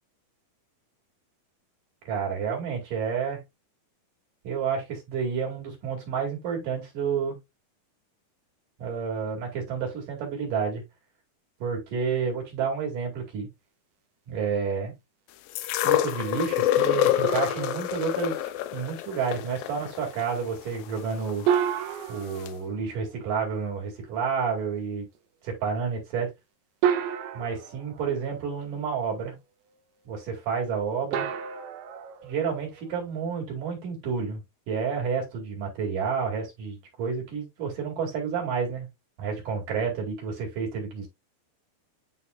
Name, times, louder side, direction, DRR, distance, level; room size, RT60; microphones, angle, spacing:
voice 1, 2.1-3.4 4.4-7.4 8.8-10.8 11.6-13.5 14.3-14.9 15.8-21.5 22.1-25.1 25.4-26.3 27.3-29.4 30.1-31.3 32.2-34.4 34.7-38.9 39.2-41.1, right 6 dB, 55° right, 3.6 m, -30 dB
sound 1, 15.6-21.6 22.5-22.6, left 13 dB, 85° left, 2.0 m, -27 dB
sound 2, 17.2-18.7 21.5-23.5 25.2-25.3 26.8-28.7 31.1-33.2, right 8 dB, 85° right, 2.8 m, -31 dB
10.5 x 4.1 x 2.3 m
omnidirectional pair, 4.7 m